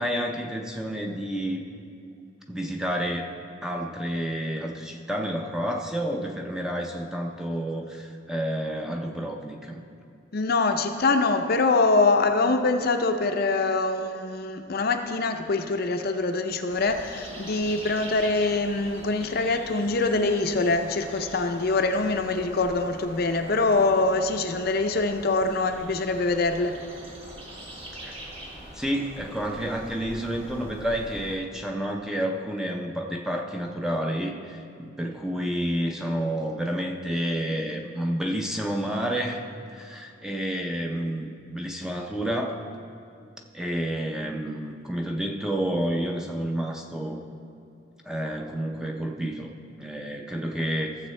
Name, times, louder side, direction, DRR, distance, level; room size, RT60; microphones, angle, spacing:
voice 1, 0.0-1.6 2.5-3.3 3.6-9.8 28.0-28.2 28.7-39.4 39.7-42.6 43.5-47.2 48.0-49.5 49.8-51.0, equal, 5° right, 1 dB, 0.5 m, -30 dB
voice 2, 10.3-26.8, left 3 dB, 50° left, 6 dB, 0.5 m, -24 dB
sound 1, 16.7-31.4, right 1 dB, 30° right, 1.2 m, -43 dB
15.0 x 7.1 x 3.2 m, 2.5 s
head